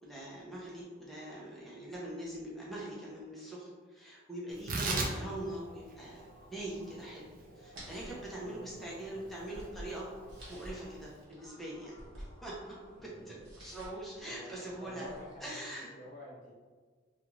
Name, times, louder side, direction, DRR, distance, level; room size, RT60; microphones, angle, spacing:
voice 1, 0.0-6.2 6.5-7.3 7.6-10.1 10.5-12.7 13.0-15.1 15.4-15.9, right 1 dB, ahead, -6 dB, 0.6 m, -43 dB
Tearing, 4.5-11.2, right 3 dB, 45° right, 0.4 m, -40 dB
sound 1, 5.4-14.6, equal, 20° left, 1.0 m, -59 dB
sound 2, 7.7-15.5, equal, 80° right, 1.1 m, -52 dB
voice 2, 8.3-9.6 13.0-13.5 14.2-16.5, left 1 dB, 45° left, -4 dB, 0.7 m, -51 dB
2.4 x 2.4 x 3.1 m, 1.5 s
head